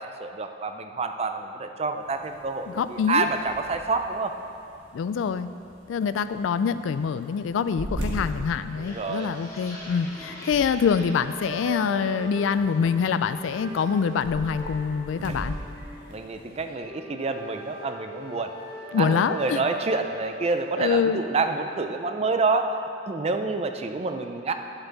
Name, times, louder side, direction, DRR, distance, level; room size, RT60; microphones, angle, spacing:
voice 1, 0.0-4.4 8.8-9.3 15.3-15.4 16.1-18.5 19.0-22.8 23.1-24.5, right 3 dB, 35° right, 7 dB, 0.4 m, -28 dB
sound 1, 2.0-16.7, equal, 75° right, 1.5 m, -41 dB
voice 2, 2.7-3.3 4.9-5.5 5.9-15.6 18.9-19.6 20.8-21.2, left 6 dB, 85° left, 13 dB, 0.3 m, -25 dB
sound 2, 8.8-12.2 12.6-13.1 13.5-13.9 14.2-15.4 15.8-16.0 16.3-16.8, left 1 dB, 20° left, 2.2 m, -44 dB
sound 3, 11.3-20.9, left 1 dB, 10° right, 2.0 m, -40 dB
8.9 x 8.0 x 3.9 m, 2.5 s
head